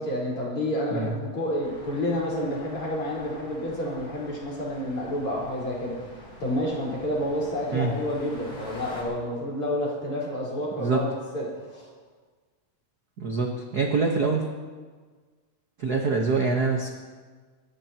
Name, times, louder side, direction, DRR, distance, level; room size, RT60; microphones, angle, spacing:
voice 1, 0.0-11.9, equal, 40° left, -5 dB, 5.4 m, -29 dB
sound 1, 1.6-9.0, left 1 dB, 20° left, 3.8 m, -46 dB
voice 2, 13.2-14.4 15.8-16.9, right 4 dB, 50° right, 0 dB, 1.1 m, -25 dB
29.0 x 14.5 x 3.0 m, 1.5 s
omnidirectional pair, 3.7 m